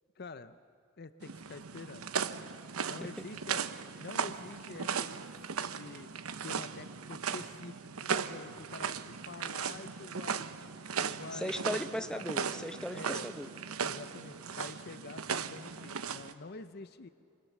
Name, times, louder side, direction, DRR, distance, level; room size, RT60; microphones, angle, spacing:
voice 1, 0.2-0.6 1.0-2.1 2.9-3.6 4.0-6.1 6.4-10.5 11.0-11.8 12.1-12.2 12.9-13.3 13.8-17.1, left 3 dB, 50° left, 12 dB, 0.6 m, -47 dB
sound 1, 1.2-16.3, right 6 dB, 90° right, 0.9 m, -37 dB
voice 2, 11.3-13.5, equal, 5° left, 8 dB, 0.9 m, -37 dB
27.0 x 25.0 x 7.2 m, 2.7 s
head